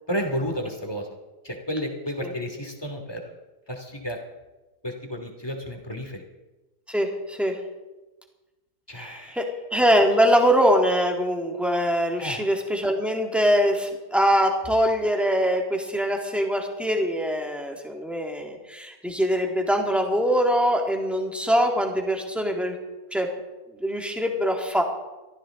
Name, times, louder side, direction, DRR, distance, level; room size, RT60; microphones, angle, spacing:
voice 1, 0.1-1.1 1.4-3.3 3.7-4.2 4.8-6.2 8.9-9.4 12.2-12.5, equal, 15° left, 3 dB, 2.6 m, -32 dB
voice 2, 6.9-7.6 9.0-22.7 23.1-23.3 23.8-24.8, equal, ahead, 1 dB, 2.1 m, -23 dB
23.5 x 14.0 x 3.9 m, 1.1 s
omnidirectional pair, 1.7 m